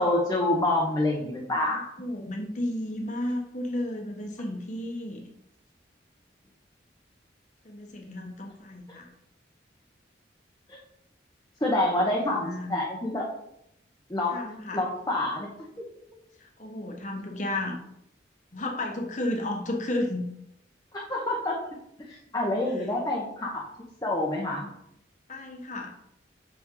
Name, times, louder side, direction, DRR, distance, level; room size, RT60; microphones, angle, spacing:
voice 1, 0.0-1.8 11.6-13.3 14.1-14.3 14.7-15.5 15.8-15.9 20.9-21.6 22.1-23.6 24.0-24.7, left 1 dB, 20° left, -4 dB, 1.0 m, -27 dB
voice 2, 2.0-5.2 7.6-9.1 12.4-12.7 14.3-14.8 16.4-17.8 18.5-20.2 22.8-22.9 25.3-25.9, left 1 dB, 40° left, 2 dB, 1.2 m, -33 dB
6.1 x 6.0 x 3.9 m, 0.79 s
head